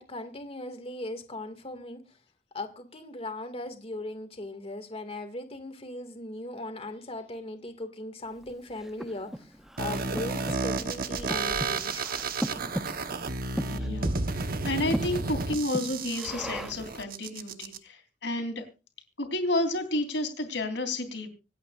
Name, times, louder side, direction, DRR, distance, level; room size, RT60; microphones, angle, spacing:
voice 1, 0.0-2.1 2.5-12.1, left 1 dB, 35° left, 2.0 m, -38 dB
Breathing, 8.4-16.9, equal, 5° right, 0.6 m, -38 dB
sound 1, 9.8-17.8, right 3 dB, 55° right, 1.1 m, -32 dB
voice 2, 13.7-18.7 19.2-21.3, left 1 dB, 80° left, 3.4 m, -31 dB
25.5 x 8.8 x 2.5 m
head